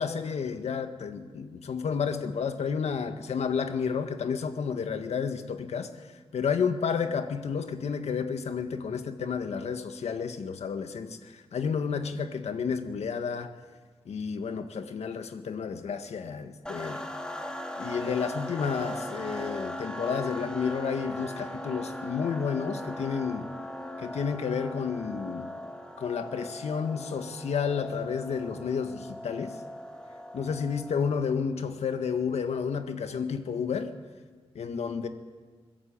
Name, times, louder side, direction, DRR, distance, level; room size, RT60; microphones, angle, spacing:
voice 1, 0.0-5.9 6.3-13.5 14.0-17.0 17.8-23.5 24.0-25.5 26.0-29.6 30.3-33.9 34.5-35.1, left 6 dB, 80° left, 1.8 m, -31 dB
sound 1, 16.7-31.2, left 1 dB, 10° left, 2.5 m, -39 dB
23.0 x 21.0 x 8.9 m
wide cardioid pair, 165°, 11 cm